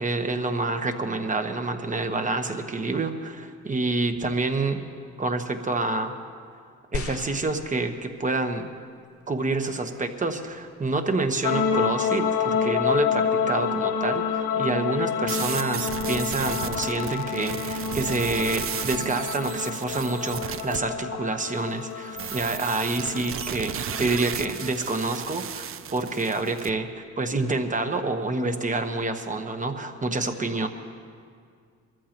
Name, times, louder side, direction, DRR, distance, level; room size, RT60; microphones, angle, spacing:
voice 1, 0.0-4.8 5.2-6.1 6.9-8.7 9.3-30.7, right 3 dB, 25° right, 6 dB, 1.2 m, -28 dB
sound 1, 6.9-8.4 9.2-9.3, left 5 dB, 50° left, 0.7 m, -37 dB
sound 2, 11.4-24.7, left 6 dB, 85° left, 0.8 m, -28 dB
sound 3, 15.3-20.8 22.2-26.7, right 9 dB, 45° right, 0.5 m, -34 dB
23.0 x 14.0 x 3.0 m, 2.2 s
cardioid pair, 90°, 30 cm